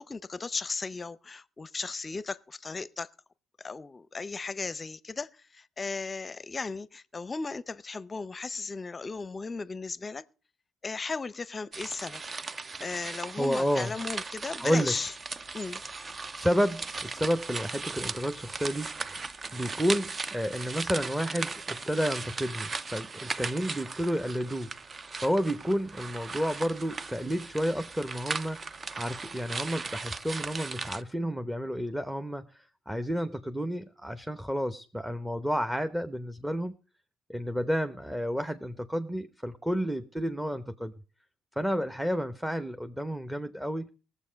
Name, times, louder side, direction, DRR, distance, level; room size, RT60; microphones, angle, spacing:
voice 1, 0.0-3.1 3.6-10.2 10.8-12.5 12.8-15.1 15.5-15.8, left 4 dB, 30° left, 0.6 m, -36 dB
sound 1, 11.7-31.0, right 4 dB, 35° right, 0.6 m, -38 dB
voice 2, 13.4-14.0 14.6-15.0 16.4-19.2 19.5-24.8 25.2-28.7 28.9-36.8 37.3-40.9 41.6-43.9, equal, 5° right, 0.9 m, -31 dB
18.5 x 7.4 x 5.1 m
supercardioid pair, 70°, 0 cm